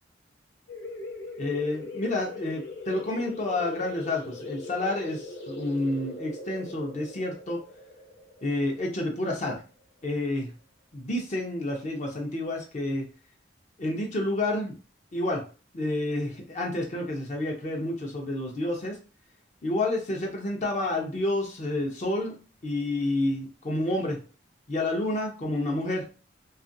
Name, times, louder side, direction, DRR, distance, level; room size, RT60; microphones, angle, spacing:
sound 1, 0.7-10.0, left 3 dB, 80° left, 0.7 m, -40 dB
voice 1, 1.4-7.6 8.4-9.6 10.0-10.5 10.9-13.1 13.8-14.7 15.1-15.4 15.7-19.0 19.6-22.4 22.6-24.2 24.7-26.1, left 2 dB, 40° left, 1 dB, 0.6 m, -29 dB
2.8 x 2.4 x 2.6 m, 0.35 s
head